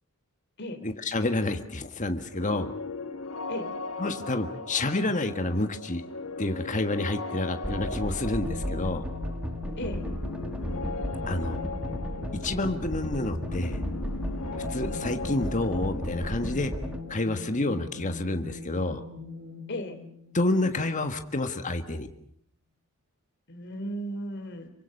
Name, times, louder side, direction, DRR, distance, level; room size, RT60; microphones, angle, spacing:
voice 1, 0.8-2.7 4.0-6.1 6.4-9.0 11.3-11.6 12.4-13.8 14.7-16.7 17.1-19.0 20.3-22.1, left 2 dB, 35° left, 7 dB, 1.6 m, -29 dB
sound 1, 2.3-20.0, left 3 dB, 70° left, 1.6 m, -39 dB
sound 2, 7.6-17.0, equal, 5° right, 1.7 m, -34 dB
sound 3, 8.4-21.3, left 4 dB, 50° right, 2.6 m, -42 dB
voice 2, 23.5-24.7, equal, 55° left, 7 dB, 3.1 m, -35 dB
27.5 x 24.0 x 6.6 m, 0.65 s
head